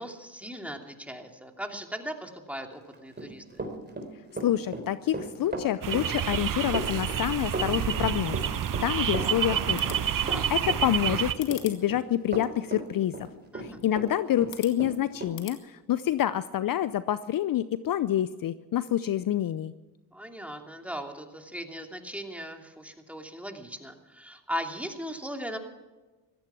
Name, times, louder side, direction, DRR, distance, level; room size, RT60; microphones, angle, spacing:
voice 1, 0.0-3.6 10.2-10.5 13.5-13.8 20.1-25.6, equal, 5° right, 3 dB, 2.8 m, -38 dB
Run, 2.9-14.1 14.4-15.3, right 1 dB, 25° right, 4.0 m, -36 dB
voice 2, 4.4-13.3 13.6-19.7, left 12 dB, 50° left, 15 dB, 0.7 m, -28 dB
sound 1, 5.8-11.3, right 9 dB, 45° right, 1.1 m, -28 dB
sound 2, 9.6-15.6, left 11 dB, 75° left, 2.1 m, -48 dB
16.0 x 14.5 x 6.1 m, 1.2 s
supercardioid pair, 55°, 44 cm